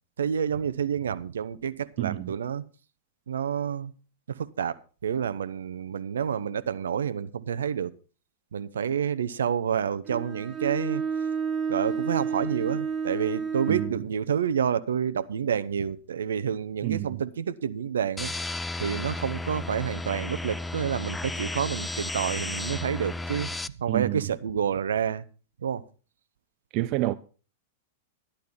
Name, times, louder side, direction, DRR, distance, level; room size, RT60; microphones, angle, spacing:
voice 1, 0.2-2.6 3.3-3.9 4.3-4.8 5.0-7.9 8.5-11.0 11.7-18.3 18.8-23.5 23.8-25.2 25.6-25.8, right 8 dB, 75° right, 0.8 m, -29 dB
voice 2, 2.0-2.3 13.7-14.1 16.8-17.2 23.9-24.3 26.7-27.1, right 17 dB, 45° right, 0.6 m, -29 dB
Bowed string instrument, 10.1-14.0, right 6 dB, 20° right, 3.5 m, -30 dB
sound 1, 18.2-23.7, left 2 dB, 5° left, 0.6 m, -33 dB
13.0 x 12.0 x 4.3 m
hypercardioid pair, 100°, 0 cm